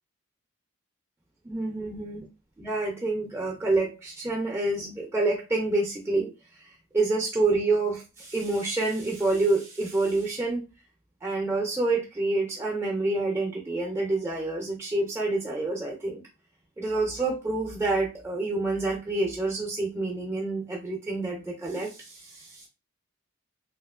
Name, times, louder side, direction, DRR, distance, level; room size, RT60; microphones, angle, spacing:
voice 1, 1.4-2.2 2.6-10.6 11.2-16.2 16.8-22.7, right 2 dB, 10° right, 0 dB, 0.4 m, -28 dB
2.8 x 2.8 x 2.3 m, 0.29 s
head